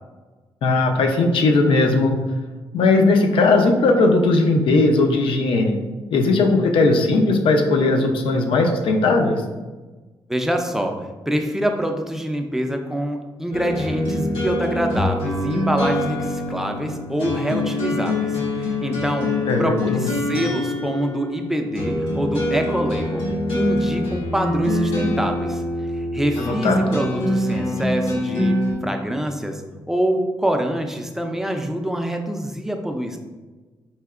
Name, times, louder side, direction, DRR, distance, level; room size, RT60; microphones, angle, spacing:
voice 1, 0.6-2.2 2.7-5.8 6.1-9.4 19.5-20.1 26.5-26.8, left 3 dB, 75° left, 4 dB, 0.5 m, -18 dB
voice 2, 10.3-25.6 26.0-33.2, equal, 5° right, 4 dB, 0.3 m, -25 dB
sound 1, 13.5-28.7, left 1 dB, 90° left, 1.3 m, -24 dB
4.2 x 2.8 x 2.4 m, 1.3 s
cardioid pair, 110°, 9 cm